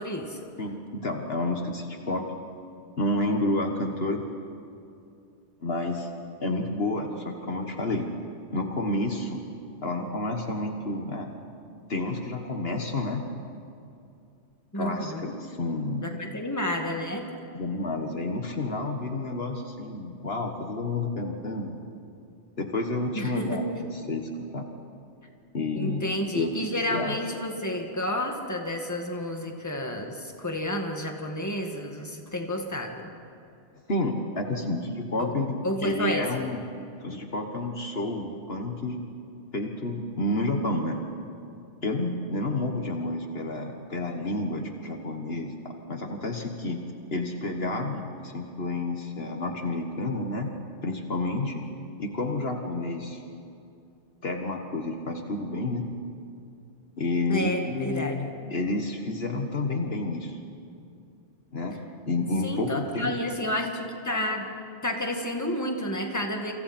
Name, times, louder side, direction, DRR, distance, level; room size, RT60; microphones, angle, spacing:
voice 1, 0.0-0.4 14.7-15.2 16.0-17.2 23.2-23.6 25.7-33.1 35.2-35.3 35.6-36.2 57.3-58.2 62.4-64.4 64.8-66.5, left 1 dB, 15° left, 2 dB, 2.1 m, -30 dB
voice 2, 0.6-2.3 3.0-4.3 5.6-6.1 6.4-8.1 8.5-9.4 9.8-11.3 11.9-13.3 14.7-16.1 17.5-21.8 22.6-24.7 25.5-26.0 26.3-27.2 33.9-36.6 37.0-39.0 39.5-41.0 41.8-46.8 47.1-50.5 50.8-51.6 52.0-53.2 54.2-55.9 57.0-60.4 61.5-61.8 62.1-63.2, left 2 dB, 60° left, 3 dB, 1.8 m, -30 dB
29.0 x 26.5 x 4.5 m, 2.6 s
omnidirectional pair, 1.2 m